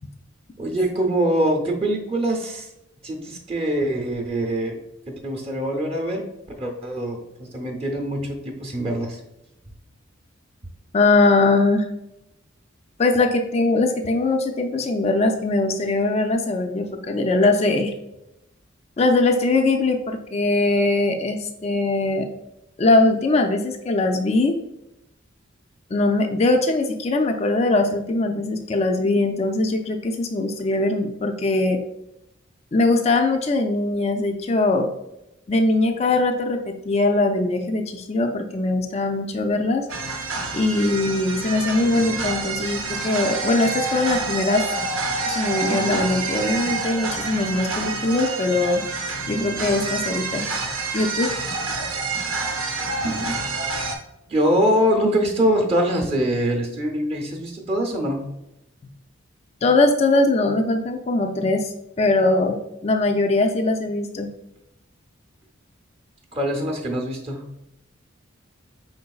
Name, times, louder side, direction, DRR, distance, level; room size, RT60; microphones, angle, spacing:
voice 1, 0.6-2.7 3.0-4.8 5.1-6.2 6.6-9.2 54.3-58.2 66.3-67.4, right 1 dB, 30° right, 1 dB, 0.6 m, -23 dB
voice 2, 10.9-11.9 13.0-17.9 19.0-22.3 22.8-24.5 25.9-31.8 32.7-34.9 35.5-39.9 40.5-44.6 45.3-48.8 49.3-50.4 50.9-51.3 59.6-64.3, left 2 dB, 30° left, 4 dB, 0.4 m, -21 dB
sound 1, 39.9-54.0, right 3 dB, 85° right, 0.7 m, -27 dB
5.0 x 3.9 x 2.3 m, 0.87 s
head